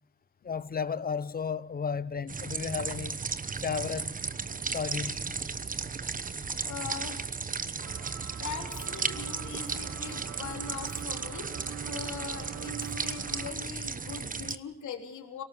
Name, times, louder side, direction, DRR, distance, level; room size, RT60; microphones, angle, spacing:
voice 1, 0.4-3.2 3.6-4.2 4.7-5.3, left 6 dB, 30° left, 0.8 m, -33 dB
sound 1, 2.3-14.6, right 5 dB, 25° right, 1.1 m, -35 dB
voice 2, 6.6-7.3 8.4-15.4, left 7 dB, 75° left, 3.6 m, -41 dB
sound 2, 7.8-13.5, right 10 dB, 60° right, 1.1 m, -44 dB
26.0 x 18.0 x 7.9 m
cardioid pair, 90°, 30 cm